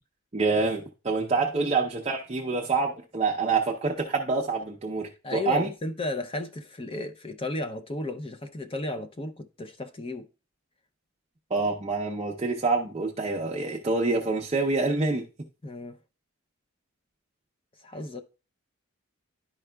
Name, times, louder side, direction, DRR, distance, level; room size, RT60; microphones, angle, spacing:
voice 1, 0.3-5.7 11.5-15.2, right 3 dB, 30° right, 0.6 m, -26 dB
voice 2, 5.2-10.3 15.6-16.0 17.8-18.2, left 2 dB, 25° left, 0.5 m, -34 dB
11.0 x 4.7 x 2.2 m
head